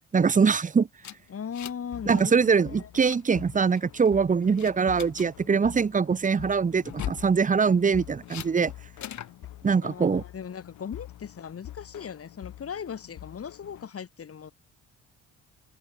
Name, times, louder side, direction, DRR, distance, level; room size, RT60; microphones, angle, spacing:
voice 1, 0.1-0.9 2.1-8.7 9.6-10.2, right 5 dB, 25° right, 0.9 m, -23 dB
sound 1, 1.0-1.9 2.2-2.4 2.8-3.2 3.7-4.1 4.6-5.3 6.8-7.3 8.3-8.5 9.0-9.3, left 11 dB, 65° left, 2.7 m, -38 dB
voice 2, 1.3-2.9 5.4-5.6 9.8-14.5, left 7 dB, 50° left, 6.6 m, -38 dB
sound 2, 1.9-13.9, left 14 dB, 85° left, 8.0 m, -46 dB
cardioid pair, 90°, 30 cm